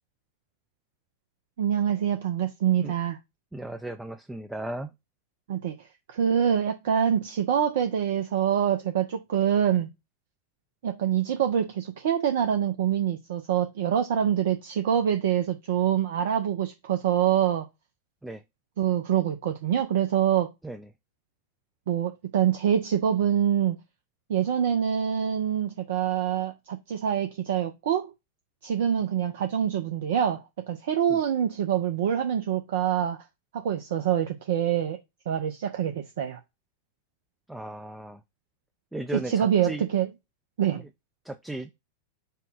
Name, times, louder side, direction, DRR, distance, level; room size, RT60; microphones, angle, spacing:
voice 1, 1.6-3.2 5.5-9.9 10.8-17.7 18.8-20.5 21.9-23.8 24.3-28.1 28.6-33.2 33.5-35.0 35.3-36.4 39.1-40.1 40.6-40.8, right 9 dB, 55° right, 0.7 m, -25 dB
voice 2, 3.5-4.9 18.2-18.4 20.6-20.8 37.5-38.2 38.9-39.8 41.3-41.7, right 1 dB, 5° right, 0.5 m, -35 dB
5.3 x 2.3 x 4.1 m
figure-of-eight pair, 90°, 0 cm